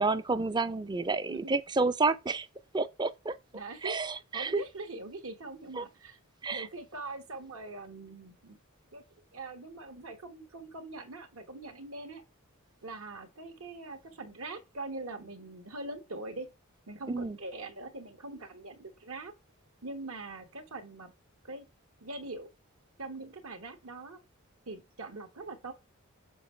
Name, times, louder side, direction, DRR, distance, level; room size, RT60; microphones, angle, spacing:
voice 1, 0.0-2.5 2.7-3.3 3.8-4.6 5.8-5.9 6.4-6.7 17.1-17.4, right 3 dB, 20° right, 0.4 m, -30 dB
voice 2, 3.5-4.0 4.3-6.2 6.5-8.6 8.9-9.0 9.3-12.2 12.8-16.5 16.9-19.3 19.8-21.1 21.4-21.7 22.0-22.5 23.0-24.2 24.7-25.7, right 2 dB, 75° right, 1.3 m, -42 dB
7.1 x 4.5 x 3.2 m
head